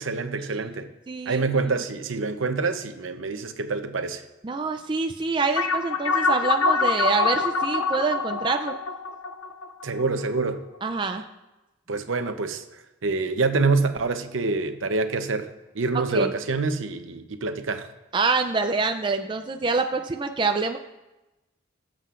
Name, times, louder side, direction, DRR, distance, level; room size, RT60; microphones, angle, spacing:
voice 1, 0.0-0.9 1.3-4.2 9.8-10.6 11.9-12.6 13.0-17.9, right 3 dB, 75° right, 0.8 m, -26 dB
voice 2, 1.1-1.4 4.4-8.7 10.8-11.3 16.1-16.3 18.1-20.8, right 4 dB, 25° right, 0.4 m, -26 dB
sound 1, 5.6-10.4, left 4 dB, 90° left, 0.6 m, -25 dB
20.0 x 7.5 x 2.5 m
head